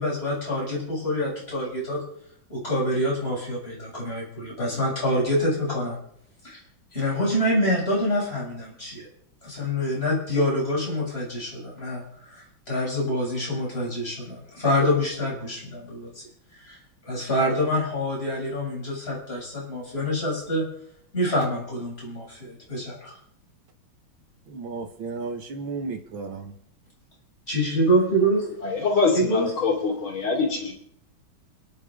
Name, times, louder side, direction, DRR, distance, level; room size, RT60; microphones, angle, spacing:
voice 1, 0.0-2.0 2.5-6.0 6.4-6.6 6.9-9.1 9.4-16.1 16.6-16.8 17.1-20.6 21.1-23.1 27.5-28.4 29.1-29.5, equal, 30° left, -5 dB, 7.2 m, -26 dB
voice 2, 24.5-26.5, right 4 dB, 80° right, 6 dB, 2.4 m, -34 dB
voice 3, 28.6-30.7, left 4 dB, 85° left, 1 dB, 4.0 m, -24 dB
29.5 x 10.0 x 3.8 m, 0.69 s
omnidirectional pair, 2.2 m